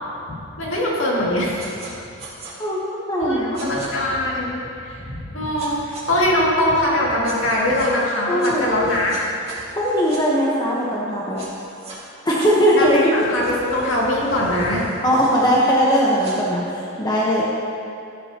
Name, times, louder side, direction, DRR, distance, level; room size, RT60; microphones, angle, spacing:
voice 1, 0.6-1.6 3.2-9.2 12.7-14.8, left 1 dB, 65° left, -5 dB, 2.3 m, -22 dB
sound 1, 1.6-1.9 2.2-2.5 3.5-3.9 5.6-6.0 7.2-7.9 8.4-10.2 11.4-12.0 12.4-16.4, right 3 dB, 30° right, 2.0 m, -41 dB
voice 2, 3.1-3.7 8.3-8.7 9.7-11.4 12.2-13.1 15.0-17.4, equal, 20° left, -5 dB, 1.1 m, -19 dB
13.5 x 11.0 x 2.9 m, 2.6 s
head